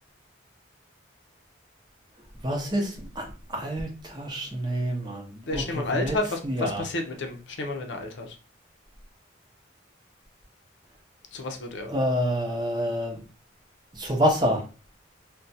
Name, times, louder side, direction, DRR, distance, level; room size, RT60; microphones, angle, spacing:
voice 1, 2.4-2.9 3.2-3.3 3.5-5.3 5.5-5.6 5.9-6.1 6.4-6.8 11.9-13.2 14.0-14.6, equal, 20° right, 1 dB, 0.7 m, -27 dB
voice 2, 5.5-8.3 11.3-11.9, left 2 dB, 65° left, 4 dB, 0.6 m, -31 dB
2.4 x 2.2 x 4.0 m, 0.34 s
head